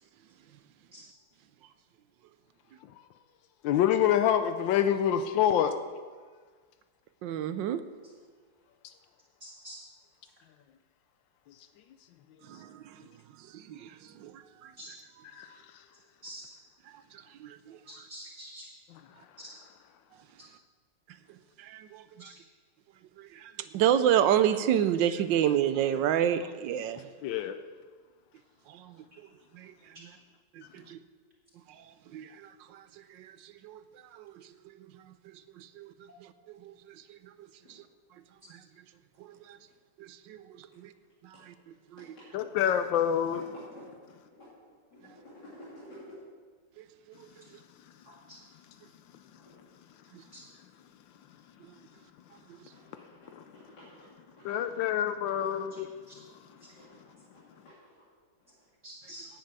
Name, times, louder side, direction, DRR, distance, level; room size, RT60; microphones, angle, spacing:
voice 1, 3.6-5.7 15.3-15.6 18.9-19.0 27.2-27.5 42.3-43.4 53.3-53.4 54.4-56.0, left 10 dB, 85° left, 9 dB, 1.3 m, -26 dB
voice 2, 7.2-7.8 12.5-13.0 13.5-14.7 17.4-17.8 21.6-22.3 23.2-27.1 28.7-29.0 29.5-29.7 30.0-30.2 30.5-31.0 31.7-31.8 32.1-32.8 33.1-33.8 34.1-34.4 35.5-35.9 36.5-37.3 37.7-37.8 38.5-38.6 39.2-39.6 40.0-40.9 41.2-41.5 41.9-42.2 50.1-50.2 51.6-51.7, right 10 dB, 75° right, 12 dB, 1.3 m, -30 dB
voice 3, 9.4-9.8 14.8-14.9 16.2-16.4 17.9-18.7 19.4-19.5 58.8-59.3, equal, 40° right, -6 dB, 2.6 m, -45 dB
voice 4, 44.9-46.2 52.7-52.8 53.5-53.9 56.8-56.9 57.3-57.7, equal, 60° left, -10 dB, 3.8 m, -50 dB
10.0 x 7.5 x 8.8 m, 1.5 s
omnidirectional pair, 2.0 m